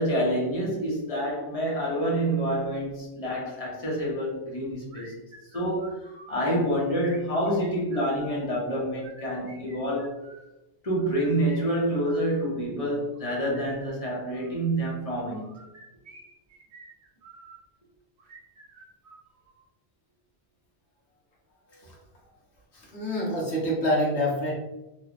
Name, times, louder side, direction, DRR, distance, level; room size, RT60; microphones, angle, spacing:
voice 1, 0.0-5.1 5.5-10.1 10.8-15.5, right 1 dB, 40° left, -4 dB, 0.7 m, -27 dB
sound 1, 4.9-6.4 7.0-8.4 8.9-10.5 11.0-12.6 13.1-14.6 15.3-17.6 18.2-19.7, right 3 dB, 70° right, 1.1 m, -51 dB
voice 2, 22.7-24.5, equal, 85° left, -4 dB, 1.2 m, -26 dB
3.1 x 2.1 x 2.4 m, 0.98 s
omnidirectional pair, 1.1 m